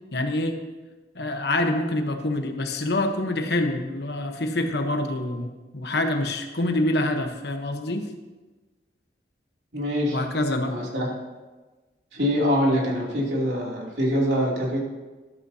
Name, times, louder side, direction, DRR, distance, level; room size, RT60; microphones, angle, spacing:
voice 1, 0.1-0.6 1.1-8.1 10.1-10.8, left 1 dB, 65° left, 5 dB, 1.1 m, -26 dB
voice 2, 9.7-10.2 10.6-11.1 12.1-14.8, equal, 75° right, -3 dB, 2.9 m, -24 dB
12.5 x 12.5 x 2.8 m, 1.2 s
head